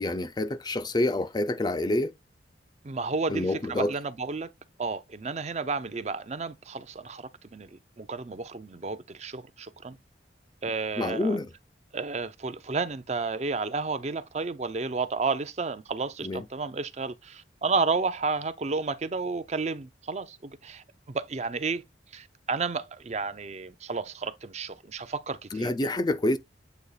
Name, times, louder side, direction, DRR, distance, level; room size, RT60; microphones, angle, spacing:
voice 1, 0.0-2.1 3.3-3.9 11.0-11.5 16.2-16.4 25.5-26.4, left 1 dB, 25° left, 0.4 m, -27 dB
voice 2, 2.8-4.5 4.8-10.0 10.6-11.4 11.9-21.8 22.1-25.7, right 4 dB, 35° right, 0.5 m, -32 dB
8.1 x 2.9 x 4.0 m
head